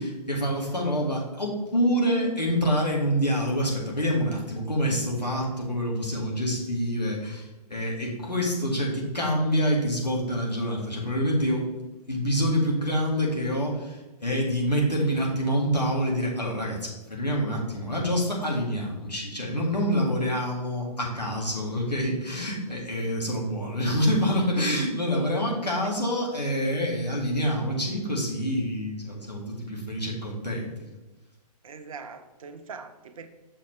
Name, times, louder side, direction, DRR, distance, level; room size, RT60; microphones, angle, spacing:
voice 1, 0.0-11.6 12.1-30.7, equal, 90° left, -2 dB, 2.2 m, -26 dB
voice 2, 31.6-33.3, right 5 dB, 55° right, 8 dB, 0.8 m, -42 dB
7.1 x 6.6 x 3.3 m, 1.1 s
figure-of-eight pair, 125°, 21 cm